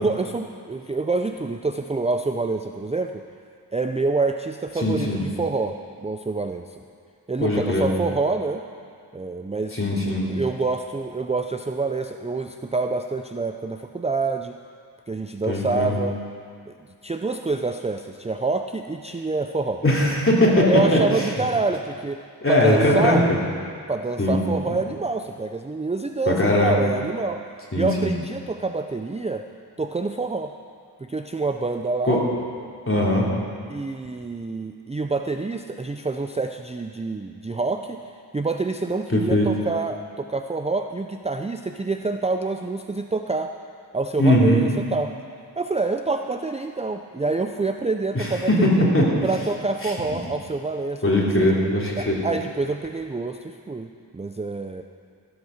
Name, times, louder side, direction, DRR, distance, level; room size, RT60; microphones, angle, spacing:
voice 1, 0.0-3.2 3.7-6.6 7.3-8.6 9.1-9.8 10.2-14.6 15.1-16.2 16.7-16.8 17.0-19.8 20.7-22.2 22.5-23.3 23.9-27.4 27.7-29.4 29.8-30.5 31.0-32.2 33.7-38.0 38.3-43.5 43.9-45.1 45.6-48.8 49.2-51.5 51.9-54.8, right 3 dB, 15° right, 5 dB, 0.4 m, -27 dB
voice 2, 4.8-5.2 7.4-7.9 9.7-10.2 15.5-16.0 19.8-21.0 22.4-23.4 24.2-24.4 24.7-24.8 26.3-26.8 27.7-28.1 32.0-32.2 32.9-33.3 39.1-39.5 44.2-44.7 48.1-49.1 51.0-52.2, left 1 dB, 30° left, -4 dB, 3.0 m, -20 dB
15.5 x 8.1 x 6.5 m, 2.2 s
wide cardioid pair, 65°, 40 cm